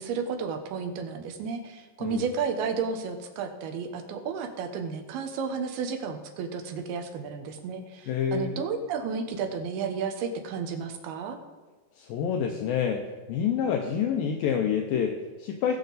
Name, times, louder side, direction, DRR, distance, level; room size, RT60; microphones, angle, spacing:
voice 1, 0.0-11.4, right 5 dB, 80° right, 6 dB, 3.0 m, -32 dB
voice 2, 8.1-8.6 12.0-15.8, left 7 dB, 75° left, 3 dB, 2.3 m, -28 dB
19.0 x 6.5 x 4.0 m, 1.3 s
omnidirectional pair, 4.4 m